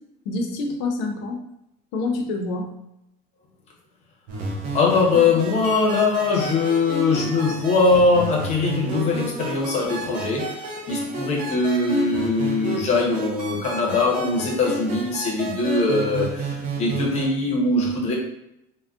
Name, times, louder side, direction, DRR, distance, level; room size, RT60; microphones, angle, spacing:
voice 1, 0.3-1.4 1.9-2.7, left 3 dB, 70° left, 3 dB, 0.6 m, -27 dB
sound 1, 4.3-17.2, right 2 dB, 40° right, 0.5 m, -31 dB
voice 2, 4.7-18.1, left 3 dB, 35° left, -1 dB, 0.7 m, -21 dB
3.5 x 2.1 x 2.3 m, 0.83 s
cardioid pair, 170°, 20 cm